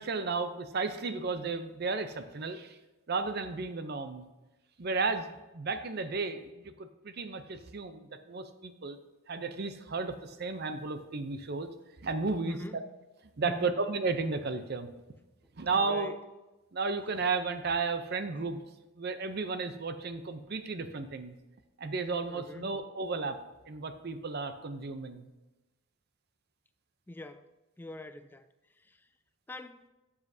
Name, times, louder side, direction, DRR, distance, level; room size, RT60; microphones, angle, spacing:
voice 1, 0.0-2.8 3.1-4.3 4.8-5.3 5.5-9.0 9.3-11.7 12.0-12.6 13.4-14.9 15.6-16.1 16.7-18.6 19.0-21.4 21.8-23.4 23.7-25.3, right 4 dB, 50° right, 0.6 m, -33 dB
voice 2, 12.4-12.9 13.4-13.8 15.8-16.2 22.3-22.8 27.1-27.5 27.8-28.5 28.8-29.1 29.5-29.9, left 1 dB, 10° left, 0.3 m, -44 dB
12.0 x 7.3 x 2.7 m
head